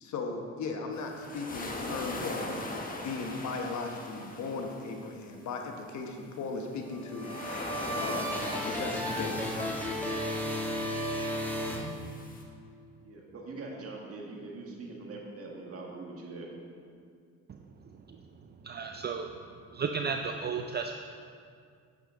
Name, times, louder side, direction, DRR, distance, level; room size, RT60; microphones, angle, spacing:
voice 1, 0.0-2.6 3.0-7.4 7.9-9.6, left 3 dB, 70° left, 2 dB, 1.2 m, -37 dB
sound 1, 0.9-5.0 7.0-12.4, left 2 dB, 30° left, 1.2 m, -40 dB
sound 2, 6.8-12.4, equal, 5° left, 1.5 m, -34 dB
voice 2, 13.0-16.5, right 3 dB, 50° right, -1 dB, 1.8 m, -42 dB
voice 3, 18.6-19.3 19.7-20.9, right 5 dB, 35° right, 4 dB, 0.5 m, -33 dB
9.0 x 7.7 x 3.8 m, 2.2 s
cardioid pair, 90°, 30 cm